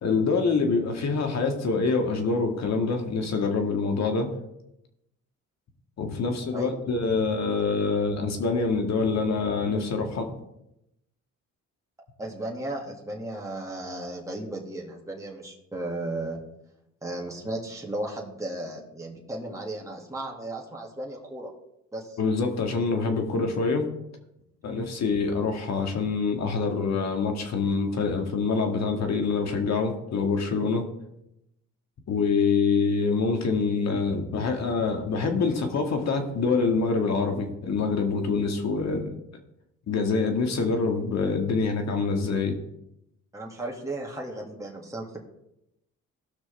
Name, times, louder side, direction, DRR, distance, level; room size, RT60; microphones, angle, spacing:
voice 1, 0.0-4.3 6.0-10.3 22.2-23.9 24.6-30.8 32.1-39.1 39.9-42.6, left 4 dB, 60° left, 4 dB, 1.9 m, -25 dB
voice 2, 12.2-16.4 17.0-21.5 21.9-22.2 43.3-45.2, right 1 dB, 10° right, -2 dB, 2.2 m, -35 dB
17.5 x 6.1 x 3.5 m, 0.84 s
cardioid pair, 90°, 30 cm